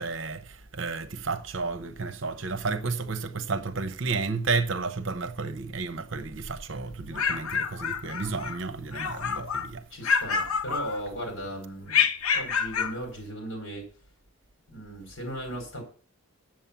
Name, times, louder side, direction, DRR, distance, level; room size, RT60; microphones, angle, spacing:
voice 1, 0.0-9.8, right 4 dB, 60° right, 0.8 m, -32 dB
sound 1, 6.9-8.6 8.9-9.7 10.0-11.3 11.9-13.0, left 6 dB, 85° left, 0.9 m, -28 dB
voice 2, 9.9-12.0 12.3-13.9 14.7-15.8, right 1 dB, 65° left, 4.7 m, -37 dB
7.8 x 7.3 x 7.1 m
head